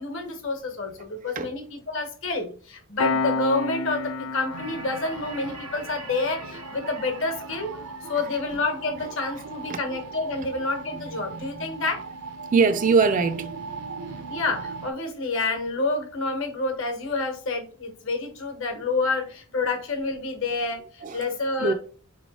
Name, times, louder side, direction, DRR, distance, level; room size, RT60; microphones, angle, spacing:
voice 1, 0.0-7.7 8.1-12.0 14.3-21.7, left 3 dB, 60° left, 1.1 m, -28 dB
Piano, 3.0-14.1, left 4 dB, 75° left, 0.4 m, -35 dB
sound 1, 4.5-14.9, right 4 dB, 90° right, 0.7 m, -39 dB
voice 2, 11.3-11.8 12.5-13.5 21.0-21.2 21.6-21.7, right 4 dB, 35° right, 0.3 m, -22 dB
3.9 x 3.1 x 4.0 m
head